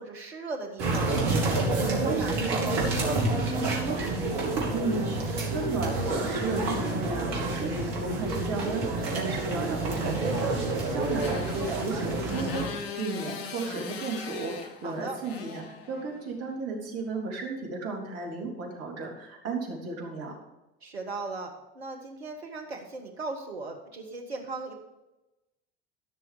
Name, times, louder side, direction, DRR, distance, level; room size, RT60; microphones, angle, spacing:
voice 1, 0.0-4.1 10.9-11.3 14.8-15.2 20.8-24.7, right 3 dB, 85° right, 3 dB, 1.6 m, -37 dB
sound 1, 0.8-12.7, right 3 dB, 65° right, 3.2 m, -28 dB
voice 2, 4.7-20.4, right 3 dB, 50° right, -1 dB, 3.6 m, -34 dB
Motorcycle, 9.7-16.4, left 5 dB, 75° left, 1.2 m, -41 dB
14.5 x 6.3 x 5.1 m, 0.99 s
figure-of-eight pair, 65°, 31 cm